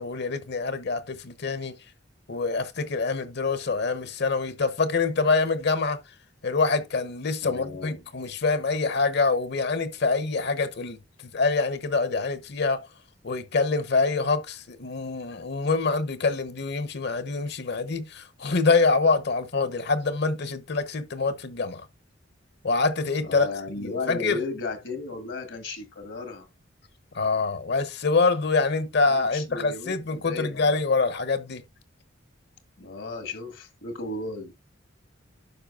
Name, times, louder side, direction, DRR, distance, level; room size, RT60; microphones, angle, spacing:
voice 1, 0.0-1.7 2.3-6.0 6.4-12.9 13.2-21.8 22.6-23.5 23.8-24.4 27.1-31.6, left 4 dB, 60° left, 0.9 m, -25 dB
voice 2, 7.4-8.0 23.2-26.5 29.1-30.7 32.8-34.5, left 2 dB, 75° left, 1.6 m, -35 dB
12.0 x 5.0 x 2.4 m
head